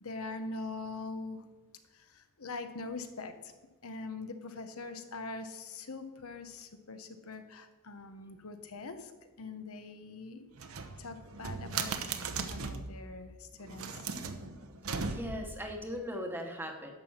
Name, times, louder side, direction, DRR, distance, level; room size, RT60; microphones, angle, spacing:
voice 1, 0.0-1.5 1.9-3.5 3.8-9.1 9.4-10.5 11.0-12.0 12.5-13.9, left 3 dB, 75° left, 8 dB, 1.0 m, -43 dB
sound 1, 10.6-12.9 13.6-15.6, right 5 dB, 70° right, 0.9 m, -37 dB
voice 2, 15.1-16.9, equal, 10° right, 3 dB, 1.1 m, -38 dB
11.0 x 5.9 x 7.2 m, 1.2 s
head